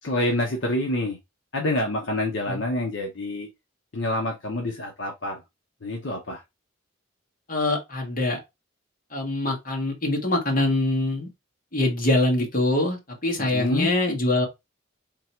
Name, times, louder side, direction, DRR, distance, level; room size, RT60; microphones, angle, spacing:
voice 1, 0.0-1.2 1.5-3.5 3.9-5.4 5.8-6.4 13.4-13.9, left 1 dB, 65° left, 0.9 m, -27 dB
voice 2, 7.5-8.4 9.1-11.3 11.7-14.5, left 2 dB, 40° left, 1.4 m, -24 dB
3.8 x 2.9 x 4.4 m
head